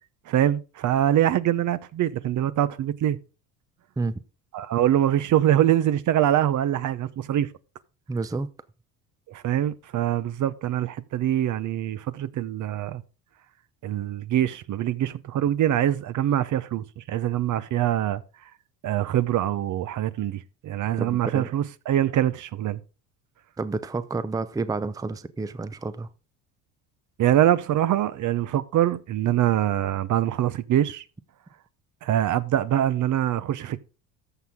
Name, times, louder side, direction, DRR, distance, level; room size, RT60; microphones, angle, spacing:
voice 1, 0.3-3.2 4.5-7.5 9.3-13.0 13.8-18.2 18.8-22.8 27.2-31.0 32.0-33.8, right 11 dB, 50° right, 0.8 m, -24 dB
voice 2, 8.1-8.5 21.0-21.5 23.6-26.1, right 3 dB, 10° right, 0.6 m, -30 dB
14.0 x 5.8 x 3.7 m
supercardioid pair, 85°, 39 cm